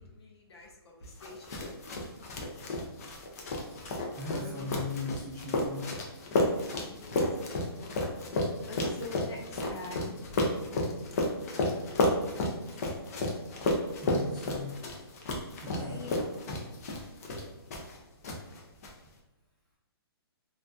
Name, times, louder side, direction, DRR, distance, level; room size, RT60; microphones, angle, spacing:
voice 1, 0.0-1.7 4.3-4.9 6.7-8.0 8.7-10.5 11.3-12.9 15.8-16.3, left 3 dB, 85° left, 0 dB, 0.6 m, -46 dB
sound 1, 1.2-18.0 18.2-18.9, left 2 dB, 40° left, 0.4 m, -32 dB
voice 2, 4.2-5.8 14.0-14.7 15.6-16.1, left 3 dB, 5° left, -11 dB, 0.9 m, -38 dB
2.4 x 2.1 x 2.5 m, 1.0 s
hypercardioid pair, 165°, 13 cm